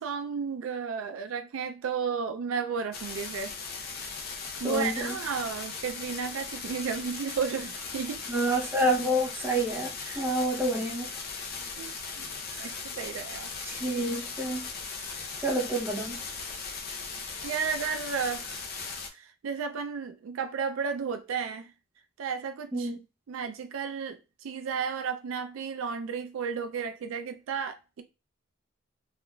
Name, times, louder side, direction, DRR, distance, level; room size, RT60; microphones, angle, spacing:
voice 1, 0.0-3.5 4.6-8.2 10.0-10.3 11.8-12.3 12.6-13.5 17.4-18.7 19.1-21.7 22.2-22.9 23.3-28.0, right 6 dB, 85° right, 0.4 m, -33 dB
sound 1, 2.9-19.1, left 4 dB, 50° left, 0.6 m, -38 dB
voice 2, 4.6-5.1 8.3-11.1 12.5-12.7 13.7-14.7 15.4-16.2 22.7-23.0, right 1 dB, 10° right, 0.6 m, -28 dB
3.6 x 2.4 x 2.2 m
head